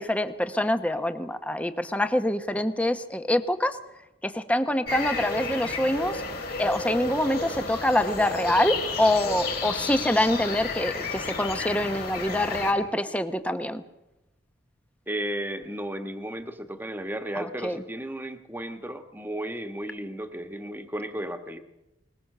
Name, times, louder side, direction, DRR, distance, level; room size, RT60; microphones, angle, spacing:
voice 1, 0.0-3.8 4.2-6.2 6.6-13.8 17.3-17.8, left 1 dB, 5° left, 9 dB, 0.9 m, -25 dB
sound 1, 4.9-12.7, left 3 dB, 50° left, 4.3 m, -32 dB
voice 2, 15.1-21.6, right 1 dB, 10° right, 7 dB, 1.4 m, -34 dB
21.5 x 20.5 x 6.7 m, 0.92 s
head